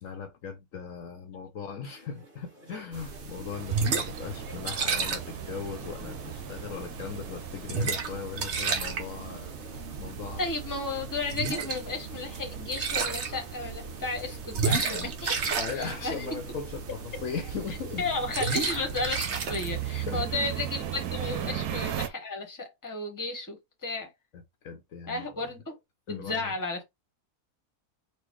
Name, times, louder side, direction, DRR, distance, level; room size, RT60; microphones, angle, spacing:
voice 1, 0.0-10.4 14.9-15.1 15.5-18.0 20.1-20.5 21.4-21.6 24.6-25.5 26.1-26.5, left 6 dB, 65° left, 1.1 m, -39 dB
sound 1, 1.8-21.0, equal, 35° right, 2.0 m, -54 dB
sound 2, 2.9-21.5, right 5 dB, 50° right, 1.1 m, -34 dB
sound 3, 3.5-22.1, right 10 dB, 80° right, 1.2 m, -40 dB
voice 2, 10.4-16.3 18.0-24.1 25.1-25.8 26.1-26.8, left 3 dB, 15° left, 1.2 m, -33 dB
4.4 x 2.5 x 4.7 m
omnidirectional pair, 1.6 m